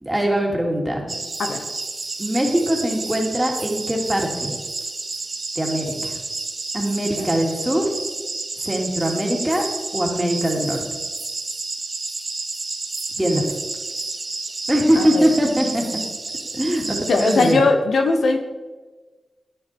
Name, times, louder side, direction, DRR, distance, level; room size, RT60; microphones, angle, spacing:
voice 1, 0.0-1.0 2.2-4.5 5.6-6.1 6.7-7.8 8.6-9.6 9.9-10.8 13.2-13.4 14.7-15.8 16.6-17.6, equal, 10° right, 0 dB, 2.5 m, -21 dB
sound 1, 1.1-17.5, right 3 dB, 45° right, 1.2 m, -30 dB
voice 2, 15.0-15.3 17.1-18.4, left 3 dB, 85° left, 5 dB, 1.0 m, -19 dB
10.5 x 10.0 x 4.4 m, 1.3 s
cardioid pair, 70°, 0 cm